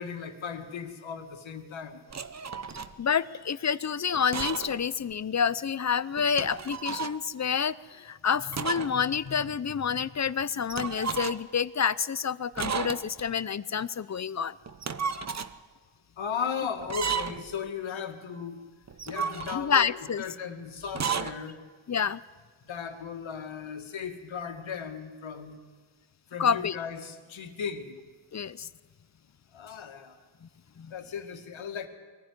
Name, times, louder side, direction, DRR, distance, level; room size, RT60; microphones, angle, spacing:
voice 1, 0.0-2.0 16.2-18.6 19.1-21.6 22.6-25.6 26.3-28.0 29.5-30.2 30.9-31.9, left 6 dB, 75° left, 5 dB, 2.3 m, -36 dB
sound 1, 2.1-2.9 4.1-4.8 5.1-5.2 6.2-7.2 8.5-9.0 9.3-9.4 10.7-11.5 12.6-13.3 14.7-15.5 16.8-17.5 18.9-19.9 20.9-21.3, right 6 dB, 35° right, 1.0 m, -33 dB
voice 2, 3.0-14.6 19.5-20.2 21.9-22.2 26.4-26.8 28.3-28.7 30.4-30.5 30.8-30.9, left 7 dB, 35° left, 17 dB, 0.7 m, -28 dB
22.0 x 15.0 x 9.7 m, 1.4 s
cardioid pair, 85°, 47 cm